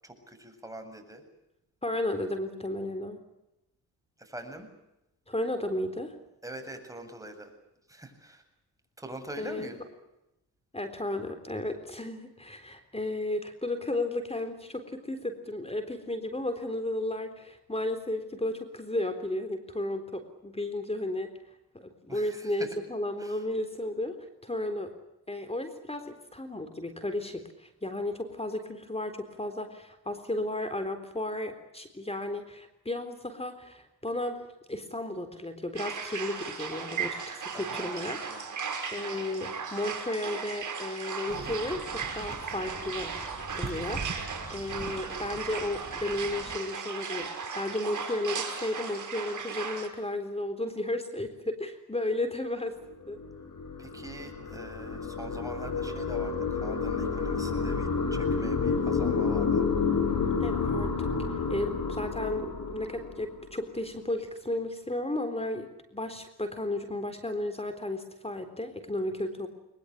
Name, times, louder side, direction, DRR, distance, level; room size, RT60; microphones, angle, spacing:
voice 1, 0.0-1.2 4.2-4.7 6.4-7.5 7.9-8.4 9.0-9.8 22.1-22.7 23.2-23.4 37.5-38.5 53.8-59.7, right 1 dB, 10° right, 5 dB, 7.7 m, -44 dB
voice 2, 1.8-3.2 5.3-6.2 9.4-9.7 10.7-21.3 21.7-24.9 25.3-38.2 38.9-43.2 43.5-52.8 53.1-53.2 60.4-69.5, left 1 dB, 15° left, 8 dB, 3.7 m, -34 dB
sound 1, 35.7-49.9, right 5 dB, 50° right, 5.3 m, -36 dB
sound 2, 41.3-46.6, right 3 dB, 25° right, 6.9 m, -42 dB
sound 3, 52.9-63.5, left 5 dB, 55° left, 6.6 m, -30 dB
22.0 x 21.5 x 10.0 m, 0.89 s
supercardioid pair, 60°, 38 cm